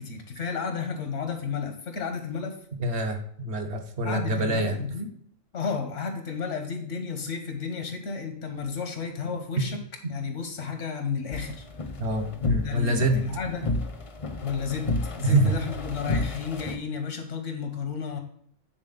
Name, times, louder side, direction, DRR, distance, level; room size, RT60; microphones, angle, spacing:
voice 1, 0.0-2.5 4.0-5.1 5.5-9.8 10.1-11.6 12.5-13.6 14.4-18.2, left 5 dB, 85° left, 4 dB, 1.5 m, -32 dB
voice 2, 2.8-4.7 9.6-9.7 12.0-13.3 15.2-15.6, right 1 dB, 65° right, 4 dB, 1.1 m, -25 dB
sound 1, 11.3-16.8, left 2 dB, 35° left, 0.6 m, -32 dB
8.9 x 4.1 x 3.9 m, 0.62 s
omnidirectional pair, 1.2 m